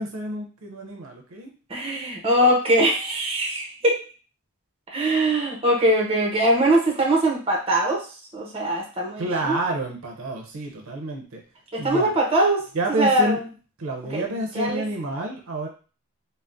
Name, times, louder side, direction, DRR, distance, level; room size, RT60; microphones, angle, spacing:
voice 1, 0.0-1.5 9.2-11.4 11.8-12.1 12.7-13.4 13.8-15.7, right 2 dB, 70° right, 2 dB, 0.6 m, -29 dB
voice 2, 1.7-4.0 4.9-8.1 8.3-9.6 11.7-12.7 13.0-13.4 14.1-14.8, right 1 dB, 25° right, -1 dB, 0.7 m, -22 dB
3.4 x 2.0 x 2.5 m, 0.36 s
head